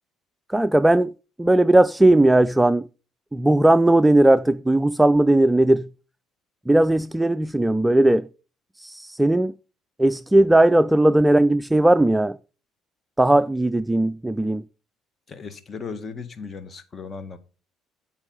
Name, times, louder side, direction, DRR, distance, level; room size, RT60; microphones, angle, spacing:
voice 1, 0.5-1.1 1.4-2.8 3.3-5.9 6.7-8.3 8.8-9.5 10.0-12.4 13.2-14.6, right 1 dB, 10° right, 0.4 m, -17 dB
voice 2, 15.3-17.4, left 5 dB, 35° left, 1.7 m, -36 dB
8.9 x 6.1 x 5.5 m
figure-of-eight pair, 50°, 0 cm